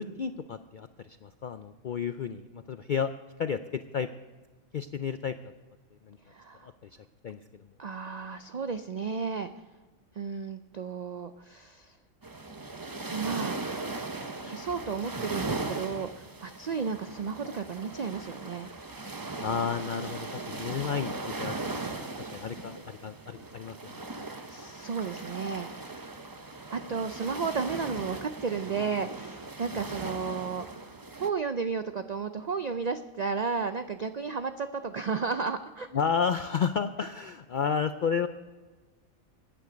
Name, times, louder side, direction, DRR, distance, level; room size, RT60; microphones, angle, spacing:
voice 1, 0.0-3.1 3.4-4.1 4.7-5.5 6.1-6.2 6.6-6.9 7.2-7.6 19.4-21.1 21.4-21.8 22.2-24.3 35.9-38.3, left 6 dB, 75° left, 10 dB, 0.4 m, -32 dB
voice 2, 6.3-6.7 7.8-9.5 10.1-12.0 13.1-13.6 14.4-18.7 24.5-25.7 26.7-35.9, right 5 dB, 85° right, 9 dB, 0.3 m, -33 dB
sound 1, 12.2-31.3, right 2 dB, 20° right, 0.6 m, -38 dB
16.0 x 10.0 x 5.1 m, 1.3 s
omnidirectional pair, 1.4 m